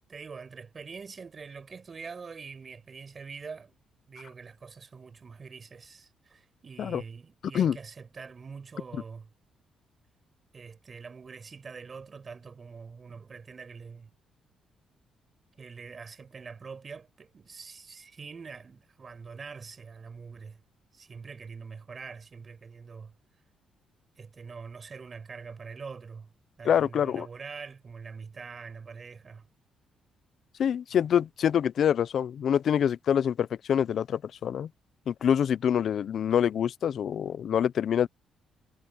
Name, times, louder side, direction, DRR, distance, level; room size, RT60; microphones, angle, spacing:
voice 1, 0.1-3.8 4.1-9.3 10.5-14.1 15.6-20.6 20.9-23.1 24.2-26.3 26.6-29.5, right 5 dB, 40° right, 6.0 m, -44 dB
voice 2, 26.6-27.3 30.6-34.7 35.1-38.1, left 9 dB, 60° left, 0.6 m, -26 dB
cardioid pair, 90°, 0 cm